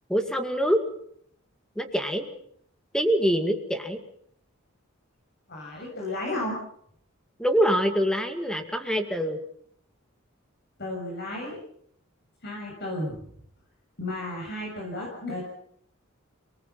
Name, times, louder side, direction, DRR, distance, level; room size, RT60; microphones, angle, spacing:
voice 1, 0.1-0.8 1.8-2.3 2.9-4.0 7.4-9.4, equal, 5° left, 6 dB, 2.2 m, -24 dB
voice 2, 5.5-6.6 10.8-11.6 12.4-13.2 14.0-15.4, left 1 dB, 55° left, -2 dB, 7.4 m, -33 dB
29.5 x 19.5 x 6.0 m, 0.67 s
head